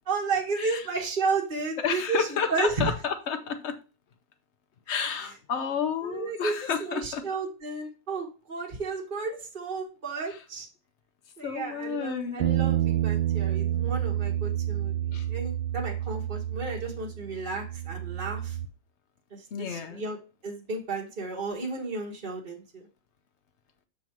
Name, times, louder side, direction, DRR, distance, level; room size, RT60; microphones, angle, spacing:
voice 1, 0.1-2.9 6.0-10.7 11.4-18.6 19.3-20.2 20.4-22.9, right 4 dB, 30° right, 1.3 m, -33 dB
voice 2, 1.8-3.8 4.9-7.2 10.3-10.4 11.4-12.4 15.1-15.3 19.5-20.0, left 7 dB, 60° left, 0.7 m, -31 dB
sound 1, 12.4-18.7, right 12 dB, 80° right, 1.4 m, -29 dB
7.4 x 3.7 x 4.5 m
omnidirectional pair, 2.1 m